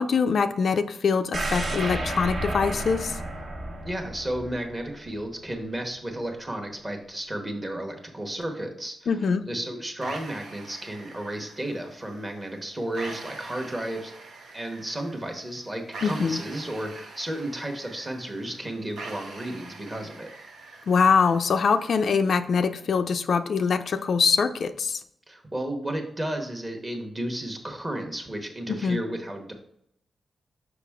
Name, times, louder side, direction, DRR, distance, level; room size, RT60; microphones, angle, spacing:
voice 1, 0.0-3.2 9.1-9.5 16.0-16.4 20.9-25.0 28.7-29.0, left 5 dB, 55° left, 8 dB, 0.4 m, -23 dB
sound 1, 1.3-5.3 5.7-5.8, right 1 dB, 50° right, 1.2 m, -32 dB
voice 2, 3.8-9.1 9.5-14.1 14.5-20.3 25.3-29.5, right 1 dB, 20° right, 4 dB, 1.1 m, -33 dB
sound 2, 10.0-22.0, right 3 dB, 80° right, 1.0 m, -44 dB
5.8 x 5.4 x 3.5 m, 0.74 s
wide cardioid pair, 145°, 0 cm